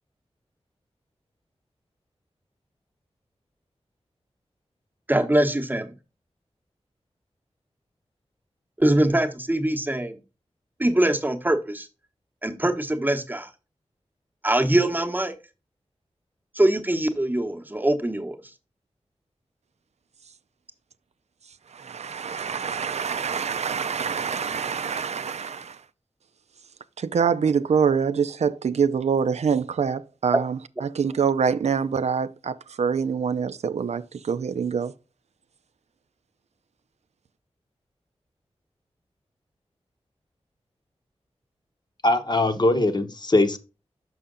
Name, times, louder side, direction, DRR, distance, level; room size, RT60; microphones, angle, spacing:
voice 1, 5.1-5.9 8.8-10.2 10.8-11.9 12.4-13.5 14.4-15.3 16.5-18.4, right 1 dB, 15° right, 0.9 m, -23 dB
voice 2, 21.7-25.8 27.0-34.9, right 6 dB, 80° right, 0.4 m, -25 dB
voice 3, 42.0-43.6, left 2 dB, 40° left, 0.8 m, -21 dB
6.3 x 5.6 x 3.7 m
wide cardioid pair, 100°, 11 cm